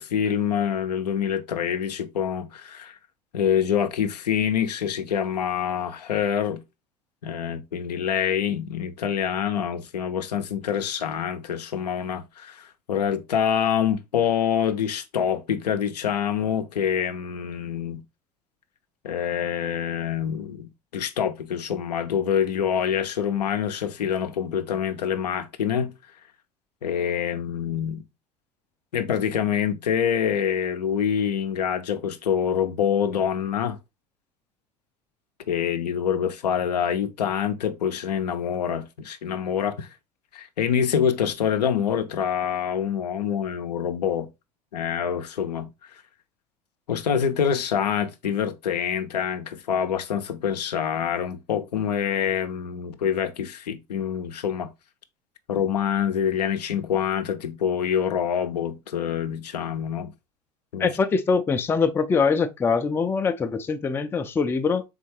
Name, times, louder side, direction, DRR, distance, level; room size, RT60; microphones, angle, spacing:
voice 1, 0.0-3.0 3.3-6.6 7.2-18.0 19.0-25.9 26.8-28.0 28.9-33.8 35.5-39.9 40.3-44.3 44.7-46.0 46.9-54.7 55.5-60.1 60.7-60.9, left 8 dB, 75° left, 0.5 m, -26 dB
voice 2, 60.8-64.8, left 5 dB, 10° left, 0.3 m, -23 dB
3.9 x 3.4 x 3.1 m
figure-of-eight pair, 75°, 21 cm